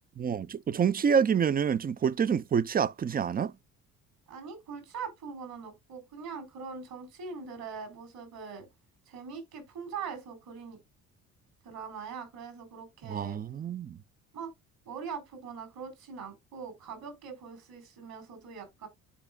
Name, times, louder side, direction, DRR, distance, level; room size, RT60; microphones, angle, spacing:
voice 1, 0.2-3.5 13.1-14.0, right 7 dB, 25° right, 0.4 m, -27 dB
voice 2, 4.3-8.7 9.1-10.8 11.6-13.4 14.3-14.5 14.9-18.9, right 6 dB, 60° right, 4.0 m, -42 dB
11.5 x 4.9 x 2.2 m
hypercardioid pair, 55°, 40 cm